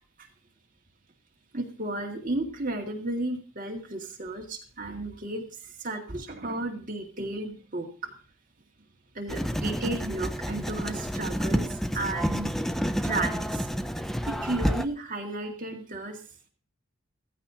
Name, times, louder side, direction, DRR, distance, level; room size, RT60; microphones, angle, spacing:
voice 1, 1.5-8.1 9.1-12.5 13.0-13.7 14.3-16.2, right 2 dB, 40° right, 0 dB, 2.0 m, -33 dB
Writing, 9.3-14.8, equal, ahead, 0.5 m, -29 dB
15.0 x 15.0 x 2.8 m, 0.36 s
head